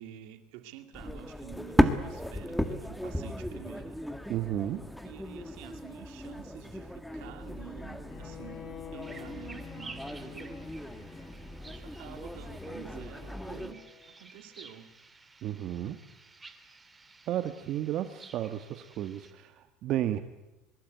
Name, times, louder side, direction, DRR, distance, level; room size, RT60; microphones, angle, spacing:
voice 1, 0.0-4.0 5.0-8.7 8.9-10.5 11.7-13.8 14.1-15.0, right 11 dB, 75° right, 2.5 m, -49 dB
sound 1, 0.9-13.7, equal, ahead, 1.9 m, -35 dB
voice 2, 4.3-4.8 15.4-16.0 17.3-20.2, right 12 dB, 50° right, 1.4 m, -33 dB
Bowed string instrument, 8.1-14.1, left 10 dB, 45° left, 7.2 m, -49 dB
sound 2, 9.0-19.3, right 3 dB, 15° right, 2.6 m, -52 dB
23.5 x 22.0 x 9.4 m
supercardioid pair, 120°, 0 cm